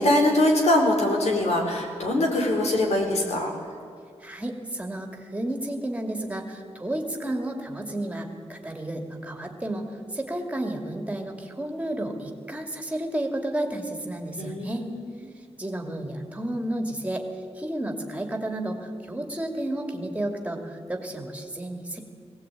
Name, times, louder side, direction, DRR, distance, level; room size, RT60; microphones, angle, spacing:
voice 1, 0.0-3.5 14.4-15.0, left 1 dB, 75° left, 1 dB, 4.8 m, -23 dB
voice 2, 4.2-14.9 15.6-17.2 17.6-22.0, right 1 dB, 10° right, 3 dB, 2.5 m, -32 dB
21.0 x 17.5 x 9.1 m, 2.2 s
wide cardioid pair, 155°, 11 cm